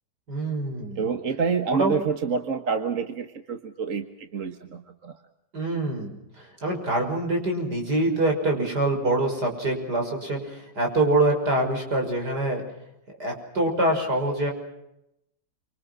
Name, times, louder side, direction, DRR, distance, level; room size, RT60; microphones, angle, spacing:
voice 1, 0.3-1.1 1.8-1.9 5.5-6.1 6.4-12.6 13.2-14.5, right 2 dB, 65° right, 2 dB, 6.6 m, -25 dB
voice 2, 1.0-5.1, right 5 dB, 50° right, 6 dB, 1.8 m, -28 dB
28.0 x 26.0 x 6.2 m, 0.85 s
omnidirectional pair, 1.9 m